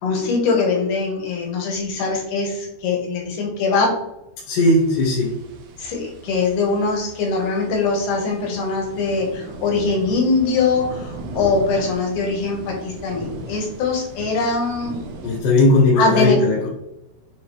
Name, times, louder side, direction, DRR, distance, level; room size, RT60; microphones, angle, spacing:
voice 1, 0.0-3.9 5.8-15.0 16.0-16.4, left 4 dB, 65° left, 0 dB, 2.3 m, -22 dB
voice 2, 4.5-5.4 15.2-16.7, left 2 dB, 80° left, -3 dB, 3.5 m, -17 dB
sound 1, 4.7-15.4, right 2 dB, 75° right, 2.0 m, -37 dB
9.2 x 3.9 x 3.2 m, 0.88 s
omnidirectional pair, 4.8 m